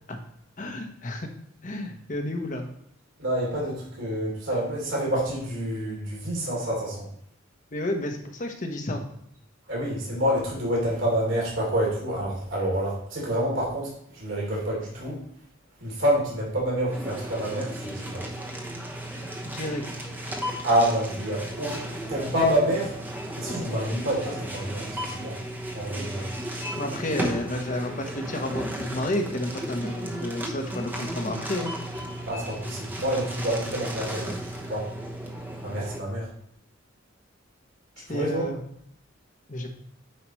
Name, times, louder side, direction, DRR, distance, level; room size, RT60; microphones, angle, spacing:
voice 1, 0.6-1.3 1.6-2.7 7.7-9.0 19.4-19.8 26.8-31.7 38.0-38.6 39.5-39.7, left 1 dB, 40° left, 3 dB, 1.0 m, -31 dB
voice 2, 3.2-7.1 9.7-15.2 15.8-18.2 20.6-22.9 23.4-25.3 25.7-26.2 32.3-34.9 35.6-36.3 38.1-38.5, right 1 dB, 65° right, -4 dB, 3.1 m, -27 dB
sound 1, 16.9-36.0, right 1 dB, 10° right, 0.9 m, -35 dB
9.7 x 4.8 x 3.1 m, 0.71 s
head